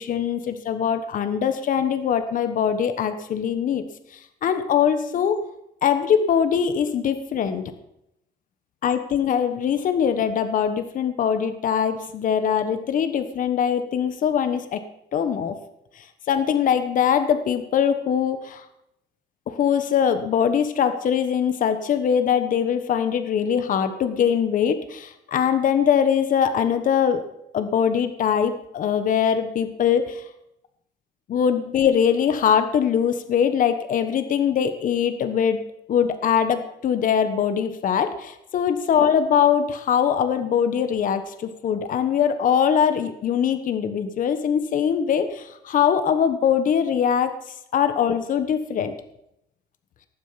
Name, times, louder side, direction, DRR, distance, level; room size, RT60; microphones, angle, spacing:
voice 1, 0.0-3.8 4.4-5.4 5.8-7.6 8.8-14.8 15.1-15.6 16.0-18.6 19.5-27.2 27.5-30.2 31.3-35.6 35.9-47.3 47.7-48.9, left 8 dB, 50° left, 9 dB, 1.2 m, -22 dB
18.5 x 7.5 x 5.8 m, 0.81 s
cardioid pair, 110°, 17 cm